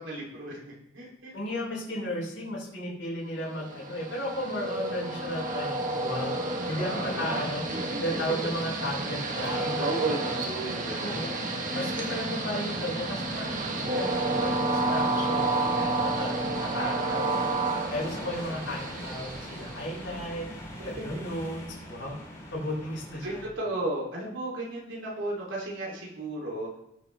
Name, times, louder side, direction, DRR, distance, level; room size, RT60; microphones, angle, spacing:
voice 1, 0.0-1.3 6.7-8.0 8.4-8.5 9.7-11.1 11.7-11.8 16.3-17.2 20.8-21.1 23.2-26.8, right 2 dB, 80° right, -4 dB, 3.1 m, -34 dB
voice 2, 1.3-5.8 6.0-6.3 6.7-7.6 8.0-10.4 11.0-11.4 11.7-13.5 13.8-17.6 17.9-20.4 20.8-22.1 22.5-23.4, left 1 dB, 75° left, -8 dB, 5.1 m, -34 dB
Train, 3.5-20.3, right 2 dB, 40° right, 1.4 m, -30 dB
sound 1, 12.7-23.5, equal, 15° left, 3.7 m, -43 dB
19.5 x 7.4 x 3.4 m, 0.76 s
head